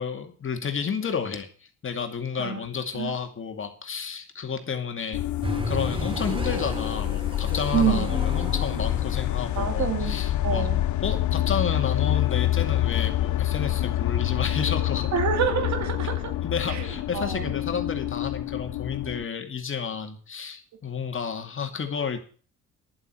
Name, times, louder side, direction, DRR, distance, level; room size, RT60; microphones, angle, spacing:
voice 1, 0.0-1.5 1.8-5.2 5.7-10.7 11.0-15.1 16.4-22.2, left 6 dB, 40° left, 5 dB, 2.3 m, -31 dB
sound 1, 5.1-19.2, left 13 dB, 70° left, 0.8 m, -27 dB
sound 2, 5.4-9.9, equal, 15° right, 2.8 m, -34 dB
voice 2, 7.7-8.1 9.6-10.2 10.4-10.8 15.1-16.3 16.7-16.9 17.1-17.5, right 8 dB, 65° right, 7 dB, 2.5 m, -27 dB
11.0 x 7.6 x 7.6 m, 0.42 s
cardioid pair, 90°, 30 cm